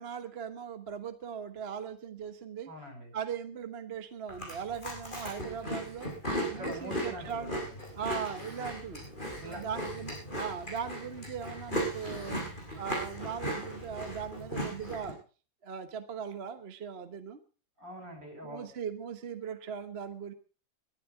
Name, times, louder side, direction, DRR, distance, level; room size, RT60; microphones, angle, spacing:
voice 1, 0.0-2.7 3.1-6.1 6.5-7.6 8.0-9.1 9.4-12.4 12.7-15.2 15.6-17.4 18.4-20.3, right 7 dB, 40° right, 9 dB, 1.2 m, -39 dB
voice 2, 2.7-3.1 6.4-7.8 9.4-9.9 17.8-18.7, equal, 65° right, 5 dB, 6.1 m, -44 dB
Chewing mastication, 4.3-15.1, equal, 25° left, 6.1 m, -37 dB
21.0 x 11.0 x 4.9 m, 0.38 s
omnidirectional pair, 2.1 m